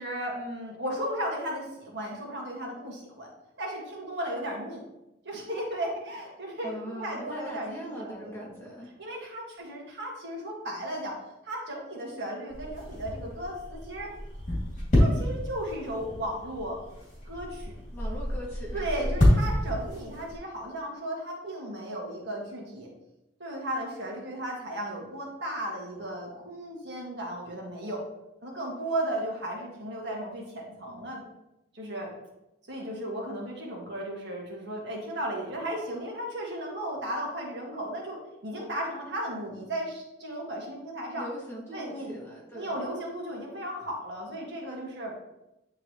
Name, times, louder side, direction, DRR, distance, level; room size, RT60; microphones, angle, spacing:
voice 1, 0.0-3.3 3.6-4.8 5.2-8.7 9.0-11.2 11.4-14.1 14.9-16.8 17.2-17.7 18.7-22.9 23.4-28.0 28.4-31.2 31.7-32.1 32.7-41.3 41.7-42.2 42.5-45.1, right 1 dB, 65° right, -2 dB, 1.7 m, -35 dB
voice 2, 6.6-8.9 17.9-18.8 41.1-42.9, equal, 15° left, -4 dB, 1.7 m, -40 dB
sound 1, 12.5-20.4, left 1 dB, 45° left, 2.2 m, -28 dB
9.4 x 3.7 x 3.0 m, 0.91 s
head